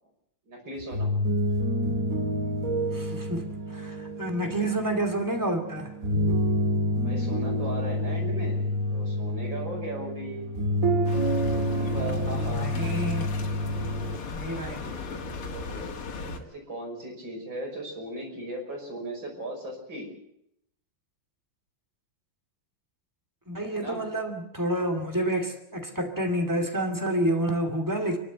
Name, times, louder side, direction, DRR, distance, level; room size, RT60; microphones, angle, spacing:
voice 1, 0.5-1.1 7.0-10.5 11.7-12.7 14.7-15.2 15.5-15.9 16.5-20.1 23.7-24.0, right 1 dB, 60° right, 1 dB, 6.4 m, -37 dB
sound 1, 0.8-14.2, equal, 40° right, 2.9 m, -28 dB
voice 2, 2.9-5.9 12.3-13.3 14.3-14.9 23.5-28.2, right 1 dB, 10° right, 4 dB, 2.5 m, -29 dB
sound 2, 11.0-16.4, left 3 dB, 85° left, 2.8 m, -37 dB
28.5 x 12.0 x 7.9 m, 0.75 s
omnidirectional pair, 2.3 m